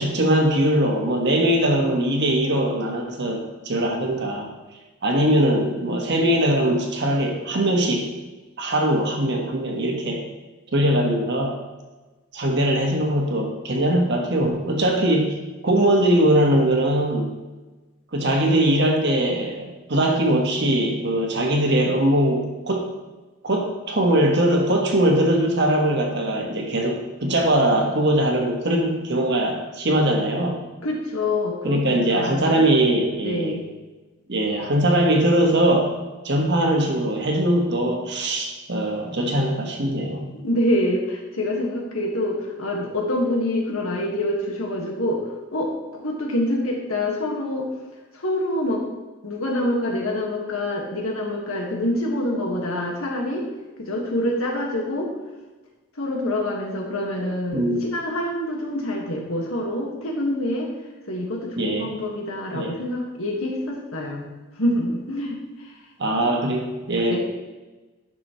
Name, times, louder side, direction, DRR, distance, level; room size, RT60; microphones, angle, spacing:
voice 1, 0.0-4.5 5.0-8.1 8.6-10.2 10.7-11.6 12.3-15.4 15.6-17.3 18.1-22.9 23.4-30.6 31.6-33.6 34.3-35.9 36.2-40.3 57.5-57.8 61.6-61.9 62.5-62.8 66.0-67.2, right 1 dB, 55° right, 1 dB, 1.4 m, -21 dB
voice 2, 30.8-32.7 33.2-33.7 40.3-47.7 48.1-48.8 49.2-53.5 53.8-55.1 56.0-60.7 61.1-64.3 64.6-65.7 66.2-66.3 67.1-67.2, left 1 dB, 90° left, 0 dB, 1.7 m, -26 dB
11.0 x 6.2 x 3.1 m, 1.2 s
head